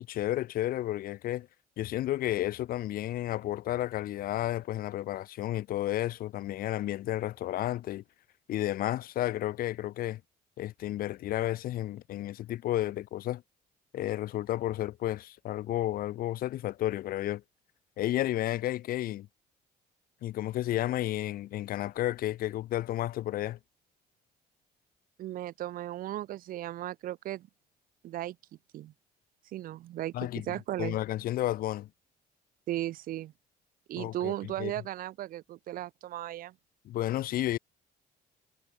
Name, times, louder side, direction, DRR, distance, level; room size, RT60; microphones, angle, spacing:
voice 1, 0.0-1.5 1.8-8.0 8.5-10.2 10.6-13.4 13.9-17.4 18.0-19.3 20.2-23.6 30.1-31.9 34.0-34.3 34.6-34.7 36.9-37.6, left 14 dB, 60° left, 0.5 m, -32 dB
voice 2, 25.2-27.5 28.0-28.4 28.7-28.9 29.5-31.0 32.7-33.3 33.9-36.5, right 14 dB, 55° right, 0.4 m, -36 dB
cardioid pair, 110°, 17 cm